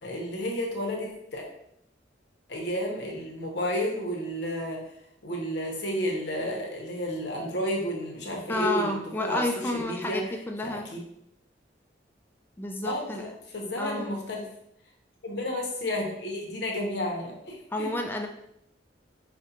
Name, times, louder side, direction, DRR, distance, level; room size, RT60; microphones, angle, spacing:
voice 1, 0.0-1.4 2.5-4.8 5.2-10.3 10.6-11.0 12.8-14.4 15.2-17.9, equal, 65° left, 0 dB, 0.8 m, -32 dB
voice 2, 8.5-10.9 12.6-13.3 13.8-14.1 17.7-18.3, left 1 dB, 10° left, 3 dB, 0.3 m, -30 dB
5.0 x 2.1 x 2.8 m, 0.75 s
head